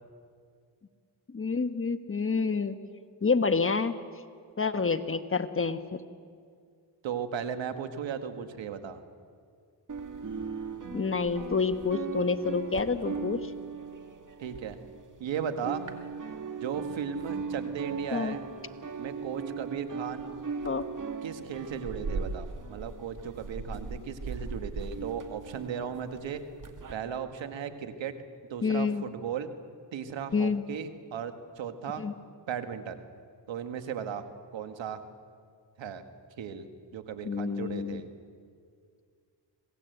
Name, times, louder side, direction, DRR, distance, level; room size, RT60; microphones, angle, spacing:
voice 1, 1.3-2.8 3.2-4.0 4.6-6.0 10.9-13.5 18.1-18.3 20.6-20.9 28.6-29.0 30.3-30.7 32.0-32.1 37.2-38.0, left 4 dB, 30° left, 10 dB, 1.2 m, -28 dB
voice 2, 7.0-9.0 14.4-14.8 15.2-15.8 16.6-18.4 19.0-20.3 21.2-26.4 26.9-28.1 28.5-29.5 29.9-32.0 32.5-33.0 33.5-34.3 34.5-35.0 35.8-36.0 36.4-38.1, right 7 dB, 85° right, 8 dB, 1.7 m, -36 dB
sound 1, 9.9-15.2 15.5-26.9, right 5 dB, 45° right, 2.1 m, -38 dB
26.0 x 18.0 x 8.0 m, 2.2 s
cardioid pair, 75°, 44 cm